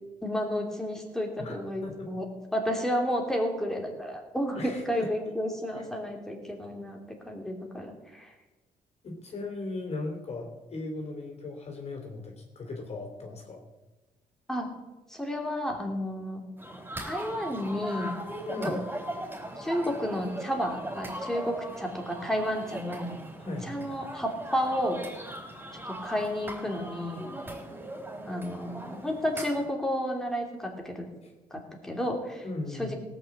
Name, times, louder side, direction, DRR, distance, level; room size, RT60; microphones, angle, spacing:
voice 1, 0.2-2.3 2.5-8.3 14.5-14.7 15.1-16.4 17.1-18.1 18.6-18.8 19.6-23.2 23.6-25.1 26.0-27.3 28.3-31.1 31.5-32.4 32.8-33.0, equal, 5° left, 1 dB, 2.8 m, -31 dB
voice 2, 1.4-2.1 4.5-5.1 5.7-5.9 9.0-13.6 18.5-18.8 23.4-23.8 31.2-31.3 32.4-33.0, left 2 dB, 45° left, 2 dB, 3.1 m, -38 dB
sound 1, 16.6-29.6, right 1 dB, 15° right, 4.2 m, -39 dB
17.5 x 6.3 x 8.4 m, 1.2 s
cardioid pair, 125°, 15 cm